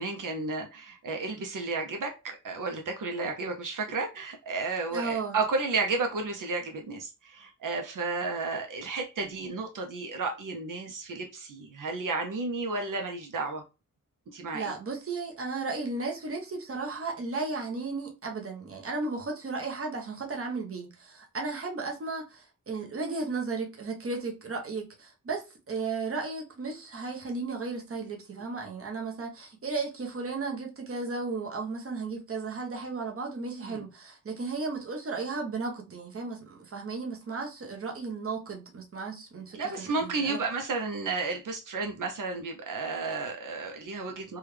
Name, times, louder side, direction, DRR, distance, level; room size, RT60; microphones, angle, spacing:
voice 1, 0.0-13.6 14.3-14.7 33.6-33.8 39.5-44.4, right 3 dB, 80° right, 0.6 m, -32 dB
voice 2, 4.9-5.4 14.5-40.4, right 4 dB, 45° right, 0.8 m, -35 dB
3.4 x 2.2 x 3.1 m
wide cardioid pair, 120°, 31 cm